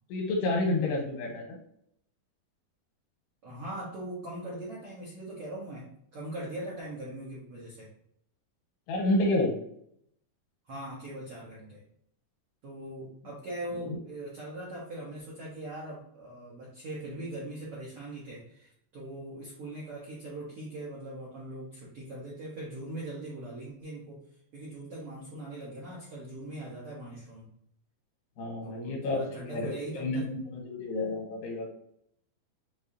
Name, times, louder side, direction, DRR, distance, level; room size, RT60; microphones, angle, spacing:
voice 1, 0.1-1.6 8.9-9.5 13.7-14.0 28.4-31.7, left 2 dB, 90° left, 0 dB, 3.2 m, -30 dB
voice 2, 3.4-7.9 10.6-11.8 12.6-24.2 24.5-27.5 28.6-30.2, right 1 dB, 80° right, -7 dB, 1.2 m, -41 dB
6.9 x 2.5 x 2.7 m, 0.71 s
omnidirectional pair, 4.6 m